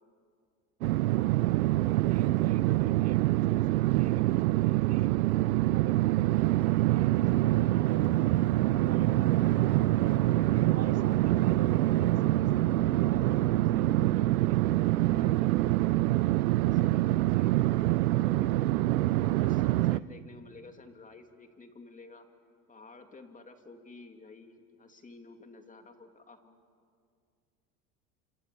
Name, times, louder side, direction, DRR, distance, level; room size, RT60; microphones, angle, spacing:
sound 1, 0.8-20.0, right 16 dB, 85° right, 0.6 m, -25 dB
voice 1, 1.8-5.1 5.6-8.2 8.7-12.6 13.0-14.6, right 9 dB, 35° right, 9 dB, 1.7 m, -46 dB
voice 2, 15.0-18.6 19.3-22.3 22.7-26.6, left 3 dB, 20° left, 6 dB, 2.7 m, -51 dB
28.0 x 26.0 x 7.0 m, 2.2 s
hypercardioid pair, 95°, 43 cm